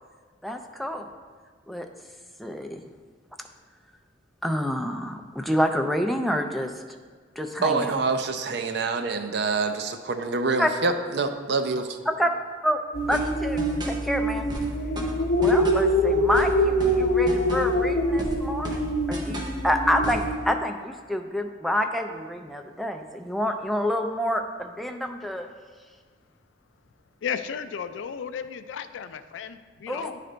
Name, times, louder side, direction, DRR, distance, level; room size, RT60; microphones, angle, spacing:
voice 1, 0.4-1.1 1.7-1.9 2.4-2.8 4.4-6.7 7.4-7.9 10.6-10.7 12.1-12.3 12.6-12.8 13.1-14.5 15.4-18.8 19.1-25.5 29.9-30.1, equal, ahead, 4 dB, 0.3 m, -27 dB
voice 2, 7.6-12.0, right 4 dB, 60° right, 7 dB, 0.5 m, -26 dB
sound 1, 12.9-20.3, equal, 35° left, 0.9 m, -24 dB
sound 2, 13.1-14.1 14.5-16.0 16.3-17.9 18.2-19.6 20.0-20.3, right 1 dB, 25° right, 0.8 m, -36 dB
voice 3, 27.2-30.2, left 7 dB, 75° left, 11 dB, 0.3 m, -34 dB
9.8 x 3.3 x 3.8 m, 1.5 s
head